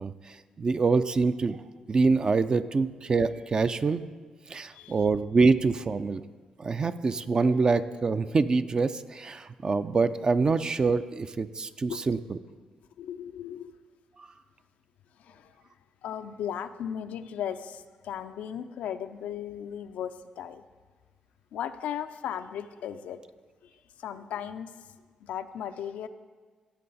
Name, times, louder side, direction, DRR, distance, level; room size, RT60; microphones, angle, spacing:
voice 1, 0.0-1.6 1.9-4.0 4.5-6.2 6.6-12.4, right 4 dB, 35° right, 11 dB, 0.4 m, -25 dB
voice 2, 4.7-5.1 11.9-12.2 13.0-13.7 15.2-15.7 16.0-20.6 21.5-23.2 23.6-26.1, left 9 dB, 90° left, 10 dB, 0.5 m, -37 dB
15.5 x 7.6 x 4.0 m, 1.4 s
cardioid pair, 100°, 2 cm